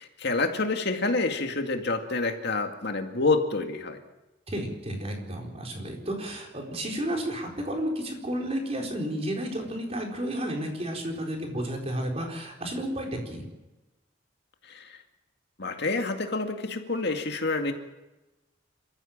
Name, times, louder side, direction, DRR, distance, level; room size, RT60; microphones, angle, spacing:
voice 1, 0.0-4.0 14.6-15.0 15.6-17.7, left 3 dB, 60° left, 5 dB, 2.2 m, -28 dB
voice 2, 4.5-13.4, right 1 dB, 30° right, 1 dB, 4.3 m, -32 dB
27.0 x 14.5 x 7.4 m, 1.1 s
head